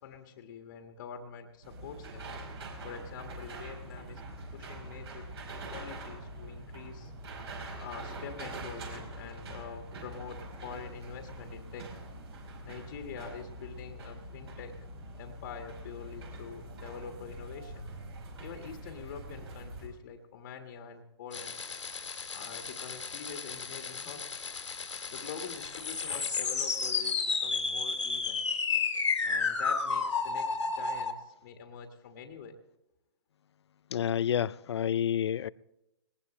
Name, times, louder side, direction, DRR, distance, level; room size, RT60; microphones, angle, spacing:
voice 1, 0.0-2.3 2.8-4.2 4.5-5.3 5.7-7.1 7.8-11.9 12.6-14.7 15.2-17.9 18.4-21.5 22.3-24.4 25.1-28.4 29.2-32.6, left 6 dB, 45° left, 5 dB, 1.7 m, -45 dB
sound 1, 1.6-19.9, right 1 dB, 60° right, 4.6 m, -44 dB
sound 2, 21.3-31.1, left 5 dB, 90° left, 2.3 m, -32 dB
voice 2, 33.9-35.5, left 9 dB, 65° left, 20 dB, 0.5 m, -29 dB
19.5 x 19.0 x 3.2 m, 0.89 s
hypercardioid pair, 140°, 15 cm